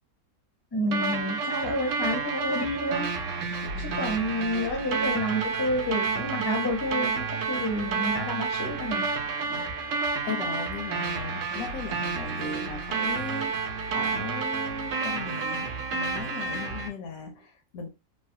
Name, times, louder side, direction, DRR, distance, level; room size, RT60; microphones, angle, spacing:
voice 1, 0.7-3.1 3.8-9.1 10.3-10.4, equal, 30° left, 0.4 m, -29 dB
sound 1, 0.9-16.9, right 4 dB, 65° right, 0.8 m, -30 dB
voice 2, 3.6-4.1 9.5-9.7 10.2-13.6 13.9-17.9, left 4 dB, 70° left, 1.1 m, -37 dB
3.1 x 2.0 x 2.6 m
omnidirectional pair, 1.6 m